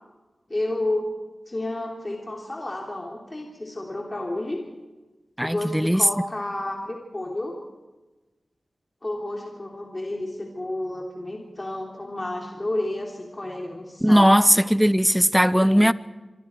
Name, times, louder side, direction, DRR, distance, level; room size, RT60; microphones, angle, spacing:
voice 1, 0.5-1.1 1.5-4.6 5.4-7.5 9.0-14.3 15.6-15.9, left 1 dB, 30° left, 3.2 m, -31 dB
voice 2, 5.4-6.0 14.0-15.9, equal, 5° right, 0.7 m, -18 dB
26.5 x 24.0 x 4.7 m
wide cardioid pair, 90°, 0 cm